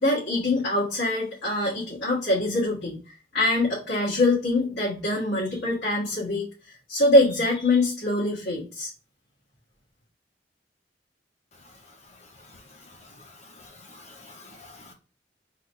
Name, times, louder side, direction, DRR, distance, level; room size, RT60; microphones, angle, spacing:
voice 1, 0.0-3.0 3.3-8.9, left 2 dB, 70° left, 1.7 m, -24 dB
voice 2, 12.4-14.9, left 2 dB, 40° left, 0.7 m, -49 dB
3.8 x 2.8 x 4.5 m
head